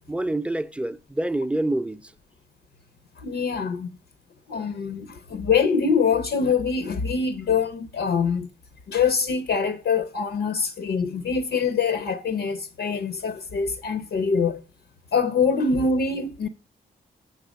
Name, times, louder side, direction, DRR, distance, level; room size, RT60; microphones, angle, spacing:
voice 1, 0.1-2.1, right 1 dB, 5° right, 0.5 m, -27 dB
voice 2, 3.2-3.9 4.5-8.5 8.9-14.6 15.1-16.5, left 5 dB, 80° left, 0.7 m, -24 dB
6.7 x 5.3 x 6.2 m
supercardioid pair, 45°, 20 cm